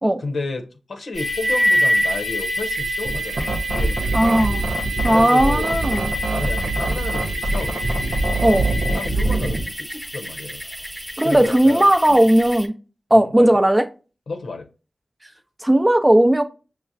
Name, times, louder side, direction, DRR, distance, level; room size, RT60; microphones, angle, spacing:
voice 1, 0.2-4.4 5.1-5.8 6.3-7.9 8.9-10.6 11.2-12.2 13.1-13.6 14.3-14.7, left 3 dB, 80° left, 0.7 m, -31 dB
sound 1, 1.1-12.7, equal, ahead, 0.9 m, -26 dB
sound 2, 3.1-9.7, right 2 dB, 85° right, 0.6 m, -24 dB
voice 2, 4.1-4.6 5.0-6.1 8.4-8.7 11.2-12.7 13.1-13.9 15.6-16.4, right 1 dB, 20° right, 0.5 m, -16 dB
5.9 x 2.0 x 2.6 m
cardioid pair, 40°, 0 cm